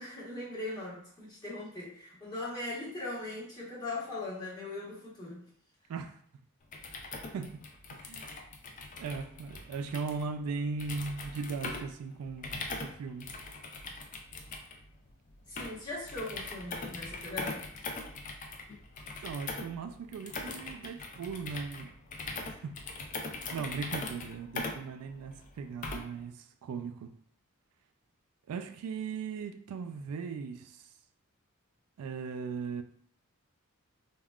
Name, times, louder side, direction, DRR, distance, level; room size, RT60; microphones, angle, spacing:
voice 1, 0.0-5.5 15.5-17.6, left 2 dB, 20° left, 1.1 m, -40 dB
voice 2, 5.9-6.2 7.3-7.6 7.9-8.3 9.0-13.4 19.2-21.9 22.4-22.7 23.5-27.1 28.5-30.9 32.0-32.8, right 5 dB, 85° right, 0.3 m, -38 dB
sound 1, 6.6-26.2, left 3 dB, 35° left, 0.4 m, -41 dB
3.5 x 2.2 x 2.3 m
head